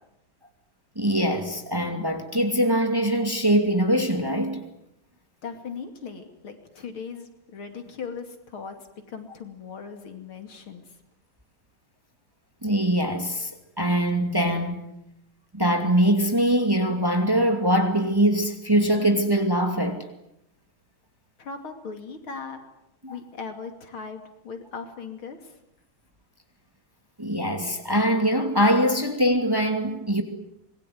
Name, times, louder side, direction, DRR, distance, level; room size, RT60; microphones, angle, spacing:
voice 1, 1.0-4.6 12.6-13.5 13.8-14.8 15.5-20.1 23.0-23.1 27.2-30.2, equal, 10° right, 2.5 m, -22 dB
voice 2, 5.4-8.8 9.1-10.8 21.4-22.6 23.1-25.6, left 5 dB, 85° left, 3.5 m, -38 dB
25.5 x 21.5 x 9.5 m
omnidirectional pair, 2.2 m